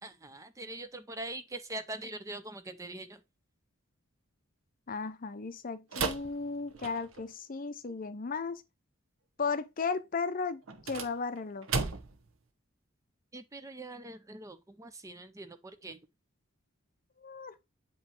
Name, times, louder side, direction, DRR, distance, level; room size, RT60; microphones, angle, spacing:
voice 1, 0.0-3.2 13.3-16.0, right 2 dB, 15° right, 0.5 m, -43 dB
voice 2, 4.9-8.6 9.4-10.6 10.9-11.7 17.2-17.5, left 4 dB, 40° left, 0.6 m, -35 dB
sound 1, 5.9-7.3 10.6-12.3, right 4 dB, 70° right, 1.0 m, -35 dB
7.9 x 3.1 x 4.4 m
head